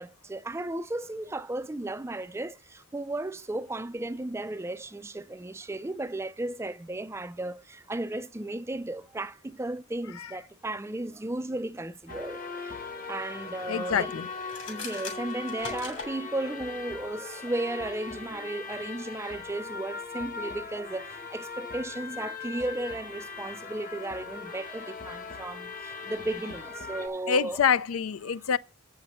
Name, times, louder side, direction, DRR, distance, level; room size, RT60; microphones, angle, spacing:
voice 1, 0.0-14.2 14.7-27.6, right 2 dB, 10° right, 0.3 m, -35 dB
sound 1, 12.1-27.1, left 4 dB, 40° left, 1.1 m, -39 dB
voice 2, 13.7-14.3 27.3-28.6, left 7 dB, 85° left, 0.4 m, -26 dB
sound 2, 14.4-16.1, left 5 dB, 60° left, 3.0 m, -40 dB
7.7 x 5.8 x 6.3 m
head